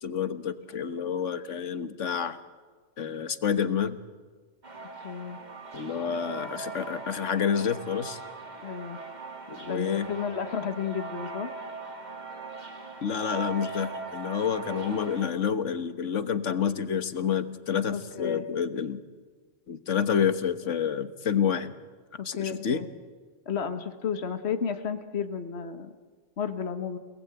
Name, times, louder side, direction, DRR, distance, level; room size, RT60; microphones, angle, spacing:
voice 1, 0.0-2.4 3.0-4.0 5.7-8.2 9.5-10.1 13.0-19.0 19.7-21.7 22.2-22.8, left 7 dB, 75° left, 11 dB, 1.6 m, -28 dB
sound 1, 4.6-15.3, right 4 dB, 35° right, 2.4 m, -40 dB
voice 2, 5.0-5.4 8.6-9.0 9.6-11.5 17.9-18.4 22.2-22.9 23.4-25.9 26.4-27.0, left 6 dB, 60° left, 8 dB, 1.6 m, -32 dB
29.0 x 19.5 x 9.0 m, 1.5 s
omnidirectional pair, 1.3 m